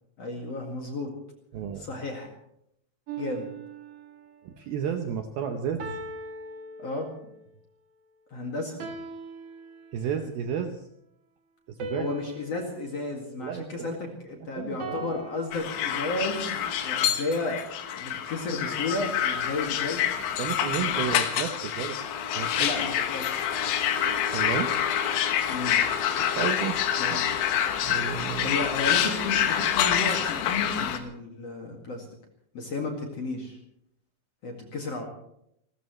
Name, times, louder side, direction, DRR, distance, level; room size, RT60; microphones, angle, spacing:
voice 1, 0.2-1.1 1.8-2.3 3.2-3.5 6.8-7.1 8.3-8.8 11.9-17.6 17.9-20.1 20.8-20.9 22.6-23.3 25.5-25.8 27.0-27.2 28.4-32.1 32.5-33.6 34.4-35.1, left 3 dB, 45° left, 1 dB, 2.4 m, -33 dB
voice 2, 1.5-1.9 4.4-5.8 9.9-10.9 11.7-12.1 13.4-14.0 14.3-15.2 20.4-22.0 22.4-22.7 23.0-23.1 24.3-24.7 26.2-27.2 27.8-28.6, right 7 dB, 75° right, 5 dB, 2.3 m, -32 dB
sound 1, 3.1-4.4 5.8-7.4 8.8-10.3 11.8-14.2 14.8-16.1, right 3 dB, 50° right, 1.9 m, -40 dB
sound 2, 15.5-31.0, left 9 dB, 80° left, 3.7 m, -27 dB
29.5 x 14.0 x 3.2 m, 0.75 s
omnidirectional pair, 5.3 m